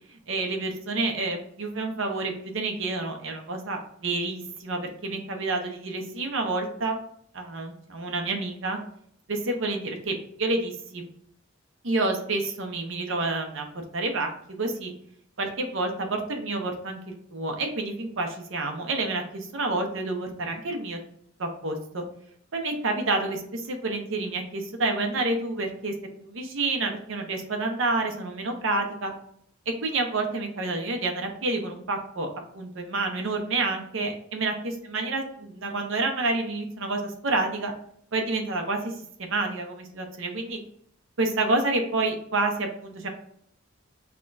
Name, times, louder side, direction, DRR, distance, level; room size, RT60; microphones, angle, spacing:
voice 1, 0.1-7.0 7.3-8.8 9.3-11.1 11.8-13.7 13.9-14.9 15.4-21.0 21.4-22.0 22.5-25.9 26.2-29.1 29.8-32.3 32.5-37.7 38.1-40.6 41.2-43.1, right 2 dB, 65° right, 3 dB, 0.8 m, -29 dB
5.8 x 2.3 x 2.6 m, 0.65 s
head